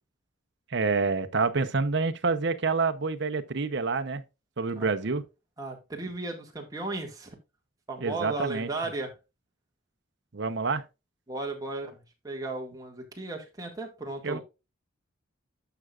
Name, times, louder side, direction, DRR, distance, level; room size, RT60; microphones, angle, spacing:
voice 1, 0.7-4.2 4.6-5.2 8.0-8.7 10.3-10.8 14.2-14.4, right 4 dB, 55° right, 0.8 m, -27 dB
voice 2, 5.6-7.4 7.9-9.1 11.3-14.4, right 2 dB, 15° right, 1.9 m, -35 dB
11.5 x 5.9 x 2.4 m
head